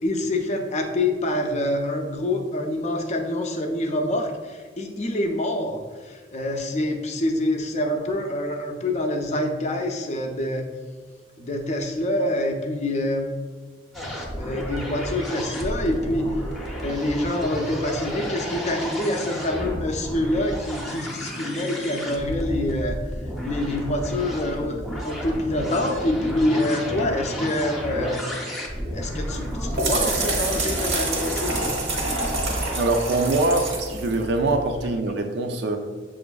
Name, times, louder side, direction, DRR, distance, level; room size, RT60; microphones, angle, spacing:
voice 1, 0.0-10.7 11.4-13.3 14.4-16.5 16.8-23.0 23.4-28.2 28.9-31.8, left 1 dB, 40° left, 0.4 m, -26 dB
sound 1, 13.9-32.8, equal, ahead, 0.6 m, -32 dB
sound 2, 29.3-34.9, right 2 dB, 85° right, 1.0 m, -28 dB
voice 2, 32.7-35.8, right 2 dB, 65° right, 0.4 m, -23 dB
6.8 x 2.5 x 2.3 m
head